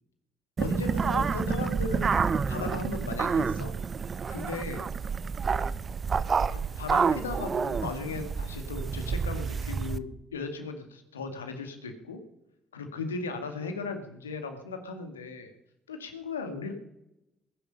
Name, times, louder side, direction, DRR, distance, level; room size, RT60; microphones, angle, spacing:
voice 1, 0.6-3.7 4.3-4.8 6.5-12.2 12.7-15.5 15.9-16.7, left 4 dB, 80° left, 6 dB, 2.2 m, -37 dB
sound 1, 0.6-10.0, right 5 dB, 40° right, 0.9 m, -29 dB
21.5 x 10.5 x 5.5 m, 0.86 s
figure-of-eight pair, 45°, 0 cm